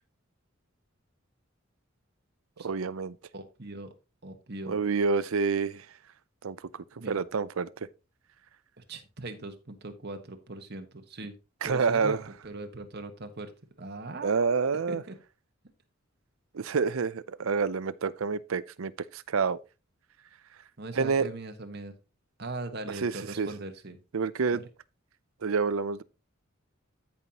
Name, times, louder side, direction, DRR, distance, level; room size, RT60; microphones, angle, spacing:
voice 1, 2.6-3.2 4.7-5.9 6.4-7.9 11.6-12.2 14.2-15.0 16.5-19.6 20.9-21.3 22.9-23.5 24.1-24.6 25.4-26.0, right 5 dB, 85° right, 0.6 m, -28 dB
voice 2, 3.3-3.9 4.2-4.8 7.0-7.2 8.8-11.3 11.6-12.2 12.4-13.5 13.8-15.2 20.8-21.9 22.4-24.0 24.5-24.6, right 2 dB, 55° right, 1.4 m, -40 dB
13.5 x 5.5 x 2.9 m
head